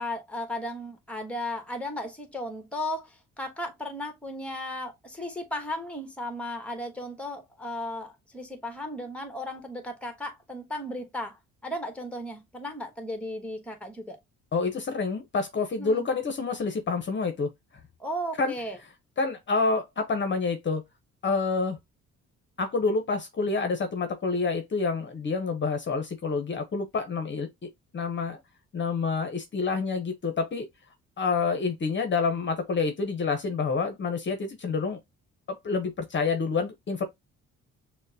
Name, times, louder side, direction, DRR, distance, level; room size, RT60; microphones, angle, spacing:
voice 1, 0.0-14.2 15.8-16.1 18.0-18.8, left 1 dB, 5° left, 1.1 m, -35 dB
voice 2, 14.5-17.5 18.4-18.5 19.2-20.8 21.2-21.8 22.6-27.5 27.9-28.4 28.7-30.7 31.2-35.0 35.5-37.0, left 4 dB, 40° left, 0.7 m, -28 dB
6.2 x 2.1 x 2.7 m
cardioid pair, 90°, 30 cm